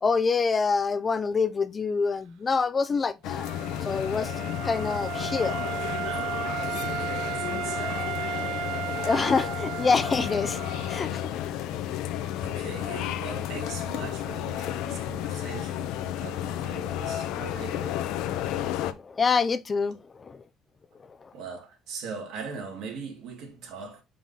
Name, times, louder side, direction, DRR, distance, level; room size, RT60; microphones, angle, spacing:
voice 1, 0.0-3.5 3.8-4.3 4.6-5.6 8.5-11.8 12.5-12.6 19.0-20.4, left 5 dB, 25° left, 0.3 m, -27 dB
sound 1, 3.2-18.9, left 11 dB, 80° left, 0.7 m, -32 dB
Wind instrument woodwind instrument, 3.3-11.1, right 12 dB, 85° right, 0.4 m, -35 dB
voice 2, 6.8-8.1 12.2-18.0 21.3-24.0, right 5 dB, 65° right, 2.1 m, -40 dB
5.1 x 3.8 x 5.4 m
cardioid pair, 150°, 0 cm